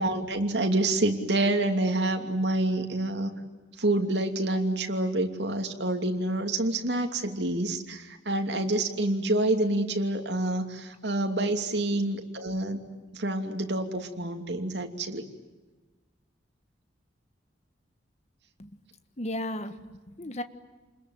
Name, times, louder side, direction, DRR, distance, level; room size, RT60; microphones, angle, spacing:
voice 1, 0.0-3.3 3.8-12.8 13.1-15.3, right 2 dB, 65° right, 4 dB, 2.9 m, -27 dB
voice 2, 19.2-20.4, left 1 dB, 40° left, 10 dB, 1.5 m, -35 dB
29.5 x 21.5 x 9.5 m, 1.2 s
head